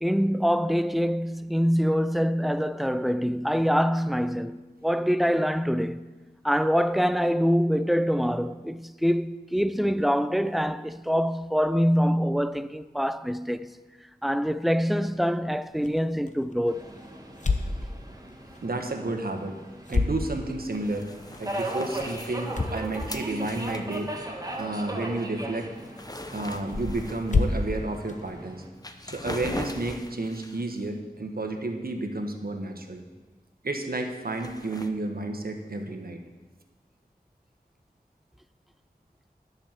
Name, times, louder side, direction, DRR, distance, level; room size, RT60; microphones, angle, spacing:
voice 1, 0.0-6.1 6.4-13.8 14.2-16.9, equal, ahead, 0.4 m, -25 dB
sound 1, 15.7-29.3, left 3 dB, 50° left, 0.9 m, -34 dB
Subway metro underground, 16.7-28.7, right 1 dB, 25° right, 1.6 m, -39 dB
voice 2, 18.6-19.5 19.9-21.1 21.4-24.1 24.6-25.7 26.3-28.6 29.1-33.0 33.6-36.2, right 2 dB, 65° right, 1.3 m, -31 dB
sound 2, 20.7-24.6 25.1-25.3 25.6-27.8 28.3-28.4 28.8-30.7 34.3-34.9, left 1 dB, 25° left, 0.8 m, -39 dB
10.0 x 6.6 x 7.4 m
wide cardioid pair, 60°, 16 cm